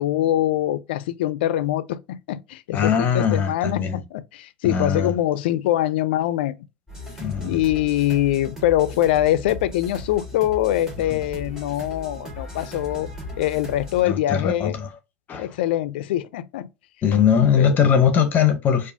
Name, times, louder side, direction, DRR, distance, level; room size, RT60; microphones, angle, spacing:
voice 1, 0.0-6.6 7.4-13.1 13.4-14.8 15.4-16.7 17.6-17.7, left 13 dB, 80° left, 0.4 m, -23 dB
voice 2, 2.7-4.0 4.6-5.1 7.2-7.6 11.1-11.2 14.0-14.9 15.3-15.5 17.0-18.9, left 7 dB, 35° left, 0.7 m, -20 dB
sound 1, 6.9-14.0, left 2 dB, 10° right, 1.6 m, -37 dB
4.7 x 2.4 x 2.6 m
supercardioid pair, 115°, 5 cm